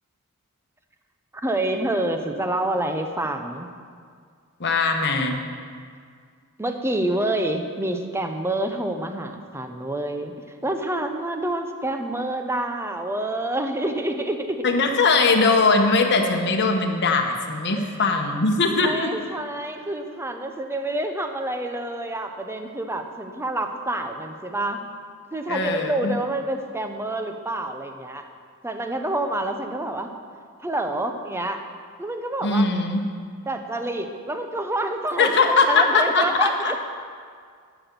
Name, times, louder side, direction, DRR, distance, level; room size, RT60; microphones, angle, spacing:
voice 1, 1.3-3.7 6.6-10.3 10.6-14.6 17.7-18.0 18.8-24.8 25.3-28.3 28.6-30.1 30.6-31.6 32.0-32.7 33.5-36.9, right 1 dB, 10° right, 6 dB, 0.7 m, -27 dB
voice 2, 4.6-5.4 14.6-19.1 25.5-26.1 32.4-33.0 35.2-36.7, left 3 dB, 50° left, 3 dB, 1.1 m, -20 dB
12.0 x 6.1 x 6.8 m, 2.1 s
head